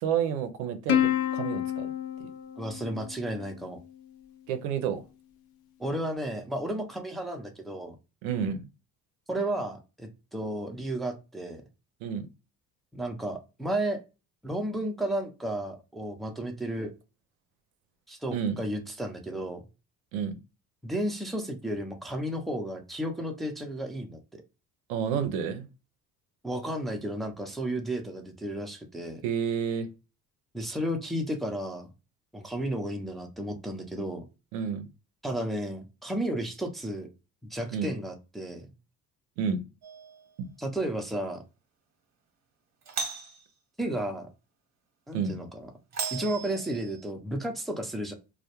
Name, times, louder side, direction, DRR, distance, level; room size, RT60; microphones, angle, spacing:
voice 1, 0.0-1.9 2.2-2.3 4.5-5.0 8.2-8.6 12.0-12.3 18.3-18.6 20.1-20.4 24.9-25.7 29.2-29.9 34.5-34.9 37.7-37.9 39.4-39.6 45.1-45.4, right 7 dB, 90° right, 0.5 m, -30 dB
Plucked string instrument, 0.9-3.6, left 11 dB, 60° left, 0.6 m, -29 dB
voice 2, 2.6-3.8 5.8-8.0 9.3-11.6 12.9-14.0 14.4-16.9 18.1-19.6 20.8-24.4 26.4-29.2 30.5-31.9 32.3-34.3 35.2-37.1 37.5-38.7 40.6-41.4 43.8-44.3 45.1-45.7 46.1-48.1, right 1 dB, ahead, 0.5 m, -33 dB
Doorbell, 39.8-40.3 42.8-43.4 45.9-47.1, right 5 dB, 40° right, 0.8 m, -36 dB
2.2 x 2.1 x 2.8 m
supercardioid pair, 65°, 42 cm